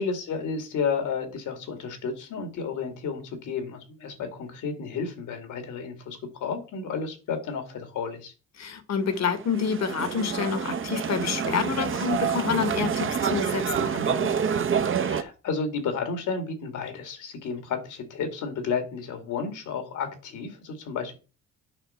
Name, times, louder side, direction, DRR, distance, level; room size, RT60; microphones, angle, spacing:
voice 1, 0.0-8.3 15.0-21.1, left 5 dB, 80° left, 2.3 m, -32 dB
voice 2, 8.6-14.3, left 6 dB, 60° left, 1.6 m, -28 dB
sound 1, 9.1-15.2, right 7 dB, 45° right, 0.9 m, -27 dB
9.0 x 5.4 x 4.4 m
cardioid pair, 90°, 30 cm